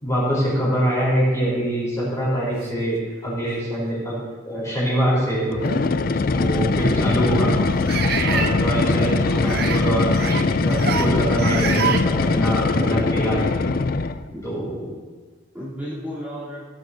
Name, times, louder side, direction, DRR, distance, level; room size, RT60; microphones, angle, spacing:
voice 1, 0.0-4.2 4.4-5.8 6.1-7.5 8.2-13.5 14.4-14.9, right 1 dB, 15° left, -7 dB, 3.9 m, -24 dB
sound 1, 3.1-3.2 3.9-4.0 5.7-5.8 7.9-8.5 9.4-9.8 10.1-10.4 10.7-11.1 11.4-12.0, right 7 dB, 50° right, 0.6 m, -26 dB
sound 2, 5.5-14.3, left 3 dB, 45° left, 0.4 m, -21 dB
voice 2, 7.5-7.9 9.2-9.6 14.3-14.4 15.5-16.7, equal, 10° right, -12 dB, 3.2 m, -34 dB
17.0 x 10.5 x 2.7 m, 1.4 s
head